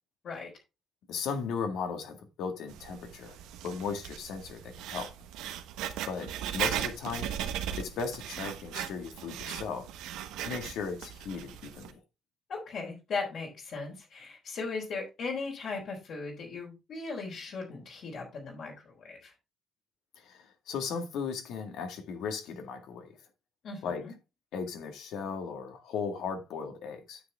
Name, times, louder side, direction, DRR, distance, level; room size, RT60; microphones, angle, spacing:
voice 1, 1.1-3.4 3.6-5.1 6.1-7.3 7.8-9.9 10.4-11.9 20.2-23.1 23.8-24.0 24.5-27.2, left 5 dB, 80° left, 2.0 m, -36 dB
Writing, 2.7-11.9, right 10 dB, 90° right, 1.1 m, -38 dB
voice 2, 12.5-19.3 23.6-24.1, left 4 dB, 60° left, 4.0 m, -38 dB
9.4 x 6.2 x 3.5 m
cardioid pair, 100°, 0 cm